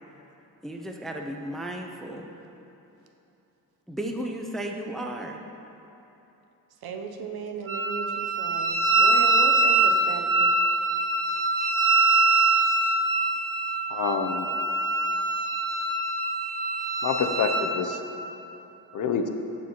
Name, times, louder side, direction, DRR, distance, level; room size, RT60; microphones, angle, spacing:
voice 1, 0.6-2.3 3.9-5.4, right 1 dB, ahead, 2 dB, 0.3 m, -34 dB
voice 2, 6.8-10.6, right 5 dB, 70° right, 4 dB, 0.6 m, -36 dB
Wind instrument woodwind instrument, 7.7-17.6, right 2 dB, 35° right, 1.1 m, -23 dB
voice 3, 13.9-14.5 17.0-18.0 18.9-19.3, left 6 dB, 55° left, 6 dB, 0.5 m, -27 dB
7.1 x 6.3 x 2.9 m, 3.0 s
wide cardioid pair, 110°, 38 cm